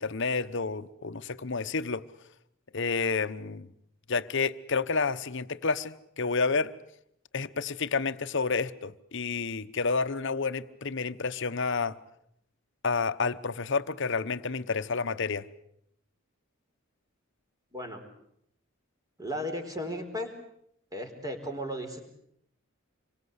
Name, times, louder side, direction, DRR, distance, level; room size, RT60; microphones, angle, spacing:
voice 1, 0.0-2.0 2.7-3.7 4.1-6.7 7.3-12.0 12.8-15.4, left 4 dB, 60° left, 12 dB, 1.0 m, -30 dB
voice 2, 17.7-18.0 19.2-20.3 20.9-22.0, equal, 15° right, 5 dB, 4.1 m, -35 dB
27.0 x 23.5 x 8.2 m, 0.73 s
head